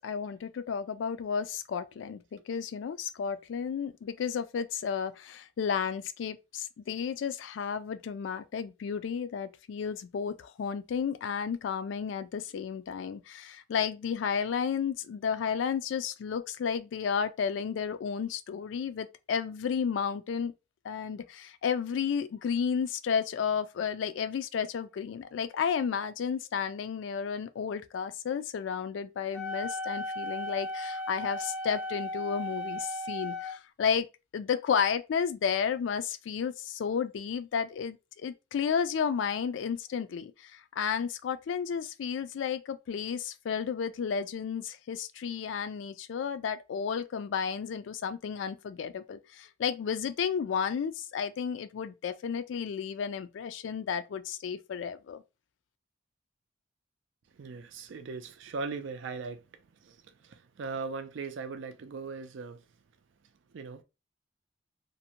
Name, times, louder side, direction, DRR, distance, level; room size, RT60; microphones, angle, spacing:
voice 1, 0.0-20.5 20.8-34.1 34.3-55.2, left 7 dB, 80° left, 0.3 m, -32 dB
Wind instrument woodwind instrument, 29.3-33.5, left 1 dB, 5° right, 0.6 m, -36 dB
voice 2, 57.3-62.6 63.5-63.8, right 4 dB, 80° right, 0.4 m, -39 dB
2.6 x 2.1 x 2.7 m
head